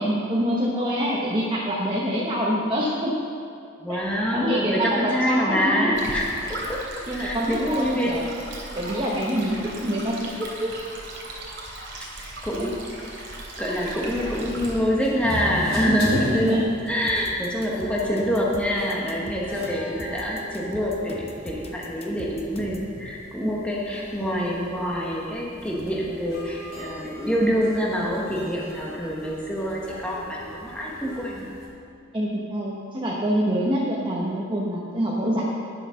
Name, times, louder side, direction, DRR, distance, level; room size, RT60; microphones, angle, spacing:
voice 1, 0.0-3.1 4.3-5.9 7.1-8.3 8.7-10.8 12.6-12.7 16.1-16.6 23.4-23.5 32.1-35.4, equal, 25° right, -5 dB, 1.1 m, -26 dB
voice 2, 3.8-8.2 12.4-12.7 13.6-31.5, equal, 5° left, -4 dB, 1.1 m, -26 dB
Stream, 5.9-14.7, right 1 dB, 65° right, 3.1 m, -37 dB
sound 1, 13.9-31.7, left 1 dB, 85° left, 3.0 m, -38 dB
sound 2, 17.1-22.9, left 1 dB, 30° left, 0.9 m, -42 dB
11.0 x 7.4 x 6.4 m, 2.6 s
head